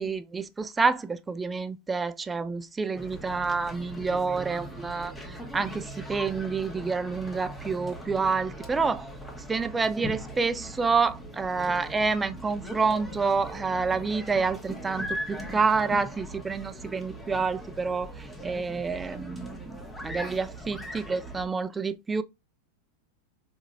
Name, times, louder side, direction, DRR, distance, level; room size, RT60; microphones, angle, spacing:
voice 1, 0.0-9.1 9.5-22.2, right 4 dB, 15° right, 0.3 m, -28 dB
sound 1, 2.9-21.5, equal, 5° left, 0.9 m, -40 dB
4.0 x 2.8 x 2.5 m
hypercardioid pair, 105°, 0 cm